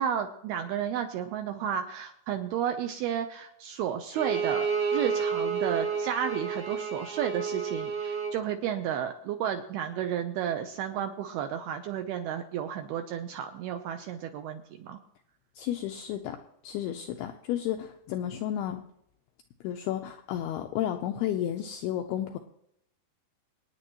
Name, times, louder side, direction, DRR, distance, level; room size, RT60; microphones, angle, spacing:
voice 1, 0.0-15.0, right 9 dB, 80° right, 6 dB, 2.4 m, -32 dB
Bowed string instrument, 4.1-8.4, right 5 dB, 65° right, 1.5 m, -30 dB
voice 2, 15.6-16.4 16.6-18.8 19.6-22.4, left 11 dB, 90° left, 5 dB, 2.3 m, -32 dB
26.5 x 9.6 x 3.0 m, 0.75 s
omnidirectional pair, 5.3 m